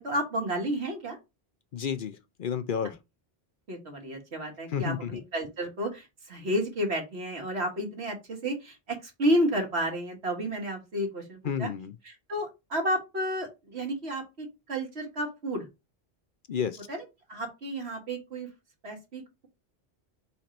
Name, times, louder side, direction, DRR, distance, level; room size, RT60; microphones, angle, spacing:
voice 1, 0.0-1.2 3.7-11.7 12.0-15.7 16.9-18.5 18.8-19.5, equal, 80° right, 2.0 m, -31 dB
voice 2, 1.7-3.0 4.7-5.1 11.4-11.9 16.5-16.8, left 7 dB, 60° left, 0.7 m, -31 dB
4.4 x 4.1 x 5.1 m
omnidirectional pair, 1.1 m